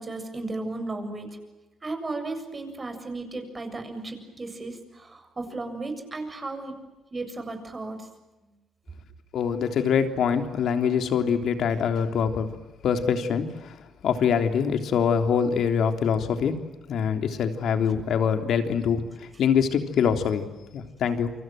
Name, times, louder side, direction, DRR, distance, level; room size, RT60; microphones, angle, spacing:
voice 1, 0.0-1.4 1.8-6.8 7.1-8.1, right 2 dB, 25° right, 7 dB, 7.5 m, -35 dB
voice 2, 9.3-12.5 12.8-16.6 16.9-21.3, left 7 dB, 70° left, 7 dB, 3.4 m, -24 dB
29.0 x 25.0 x 7.7 m, 1.1 s
cardioid pair, 90°, 0 cm